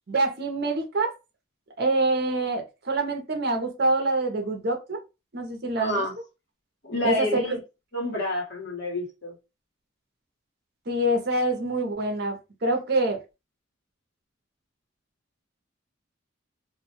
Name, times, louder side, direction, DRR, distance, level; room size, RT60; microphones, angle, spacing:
voice 1, 0.1-1.2 1.8-5.0 5.3-6.0 7.0-7.6 10.9-13.2, right 2 dB, 55° right, 0.6 m, -26 dB
voice 2, 5.8-6.1 6.8-7.6 7.9-9.3, left 1 dB, 60° left, 1.3 m, -28 dB
2.5 x 2.2 x 2.9 m
head